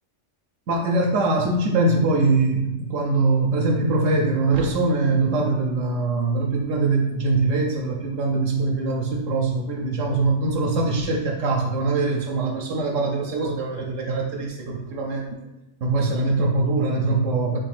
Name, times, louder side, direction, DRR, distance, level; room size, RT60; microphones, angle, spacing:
voice 1, 0.7-15.3 15.8-17.6, right 3 dB, 80° right, 0 dB, 1.0 m, -22 dB
5.5 x 2.5 x 3.3 m, 0.98 s
omnidirectional pair, 1.3 m